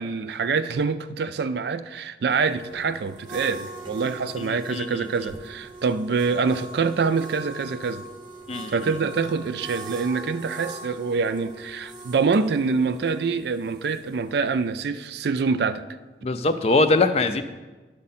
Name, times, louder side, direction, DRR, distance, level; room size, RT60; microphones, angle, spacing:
voice 1, 0.0-8.0 8.7-15.8 16.2-16.3, right 5 dB, 65° right, 0.4 m, -25 dB
sound 1, 2.3-14.8, right 2 dB, 25° right, 0.9 m, -42 dB
voice 2, 4.4-5.1 8.5-8.9 16.2-17.4, left 3 dB, 35° left, 0.4 m, -23 dB
10.5 x 6.5 x 4.2 m
head